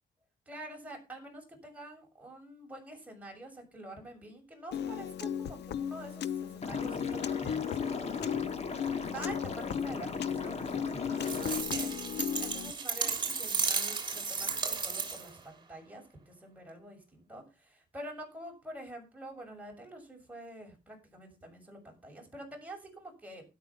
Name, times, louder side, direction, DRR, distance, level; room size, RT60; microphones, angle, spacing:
voice 1, 0.4-8.6 9.1-11.9 12.4-23.4, right 1 dB, 10° right, 1 dB, 6.8 m, -47 dB
Piano, 4.7-12.7, left 9 dB, 65° left, 0.8 m, -36 dB
Liquid, 6.6-11.6, left 4 dB, 35° left, 2.0 m, -38 dB
sound 1, 11.2-15.4, right 5 dB, 25° right, 3.5 m, -33 dB
12.5 x 11.5 x 5.6 m, 0.30 s
wide cardioid pair, 175°, 18 cm